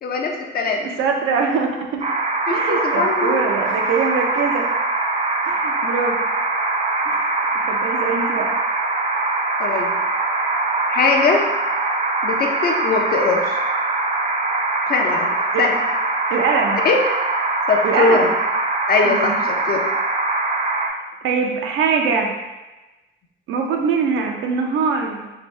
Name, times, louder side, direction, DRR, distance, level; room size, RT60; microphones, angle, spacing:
voice 1, 0.0-0.8 2.5-3.4 9.6-10.0 10.9-11.5 12.2-13.6 14.9-15.3 15.6-15.8 16.8-17.0 17.7-18.3 18.9-19.8, left 4 dB, 50° left, 2 dB, 0.5 m, -20 dB
voice 2, 0.8-2.1 2.5-4.7 5.5-6.2 7.1-7.2 7.6-8.5 15.5-15.6 16.3-16.8 17.8-18.3 19.0-19.4 21.2-22.3 23.5-25.3, right 5 dB, 80° right, 2 dB, 0.5 m, -22 dB
sound 1, 2.0-20.9, right 3 dB, 35° right, 0.4 m, -22 dB
2.7 x 2.6 x 3.2 m, 1.1 s
cardioid pair, 90°, 20 cm